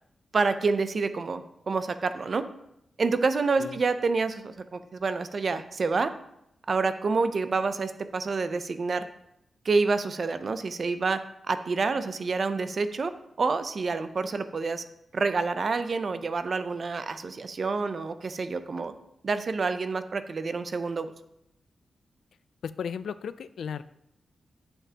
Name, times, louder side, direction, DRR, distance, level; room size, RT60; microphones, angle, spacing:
voice 1, 0.3-2.4 3.0-6.1 6.7-9.0 9.6-11.2 11.4-13.1 13.4-14.8 15.1-18.9 19.2-21.1, right 4 dB, 45° right, 10 dB, 0.5 m, -28 dB
voice 2, 22.6-23.8, left 7 dB, 85° left, 14 dB, 0.3 m, -35 dB
10.0 x 7.0 x 2.9 m, 0.80 s
wide cardioid pair, 160°, 0 cm